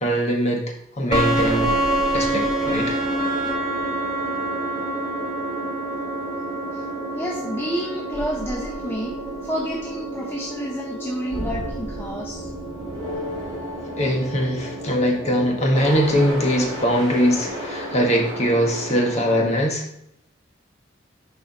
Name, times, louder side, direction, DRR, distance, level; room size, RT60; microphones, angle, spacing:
voice 1, 0.0-0.6 1.0-1.7 2.1-2.9 14.0-19.8, equal, 35° left, 0 dB, 1.4 m, -21 dB
sound 1, 1.1-19.5, right 1 dB, 20° right, 2.9 m, -28 dB
voice 2, 7.1-12.5, equal, 10° left, -3 dB, 0.8 m, -30 dB
10.5 x 4.8 x 2.9 m, 0.75 s
head